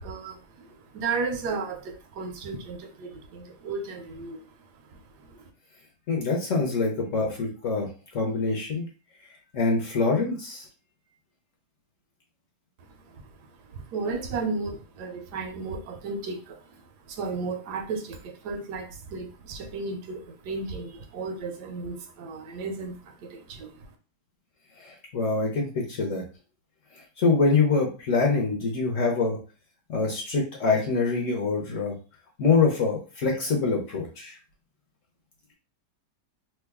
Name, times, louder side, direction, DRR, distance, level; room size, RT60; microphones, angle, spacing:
voice 1, 0.0-5.5 12.8-23.9, right 4 dB, 75° right, 1.1 m, -35 dB
voice 2, 6.1-8.9 9.5-10.6 24.8-26.2 27.2-29.4 29.9-31.9 32.4-34.4, left 4 dB, 55° left, 0.9 m, -25 dB
3.0 x 2.2 x 3.4 m
omnidirectional pair, 1.8 m